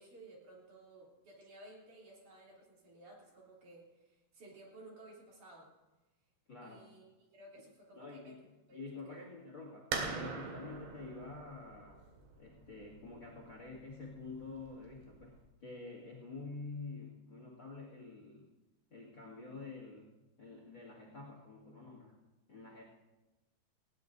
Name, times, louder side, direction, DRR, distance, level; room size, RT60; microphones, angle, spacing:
voice 1, 0.0-5.7 6.6-9.2, right 2 dB, 50° right, -4 dB, 4.5 m, -56 dB
voice 2, 6.5-6.9 7.9-8.4 8.7-12.1 12.4-18.5 18.9-20.1 20.4-22.2 22.5-22.8, left 3 dB, 35° left, -1 dB, 2.4 m, -48 dB
sound 1, 9.9-15.4, right 4 dB, 80° right, 4.0 m, -43 dB
19.5 x 17.0 x 2.7 m, 1.1 s
omnidirectional pair, 4.8 m